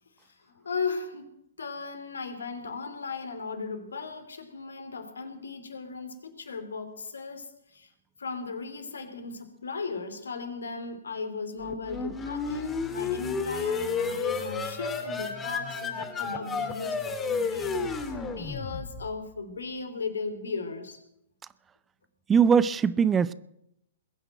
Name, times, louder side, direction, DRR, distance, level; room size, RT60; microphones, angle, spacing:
voice 1, 0.2-1.3 1.6-7.9 8.2-17.9 18.3-21.0, left 4 dB, 80° left, 8 dB, 3.0 m, -36 dB
sound 1, 11.6-19.2, left 4 dB, 15° left, 2.3 m, -32 dB
voice 2, 22.3-23.3, right 7 dB, 15° right, 18 dB, 0.6 m, -21 dB
21.0 x 8.9 x 7.7 m, 0.78 s
figure-of-eight pair, 115°, 0 cm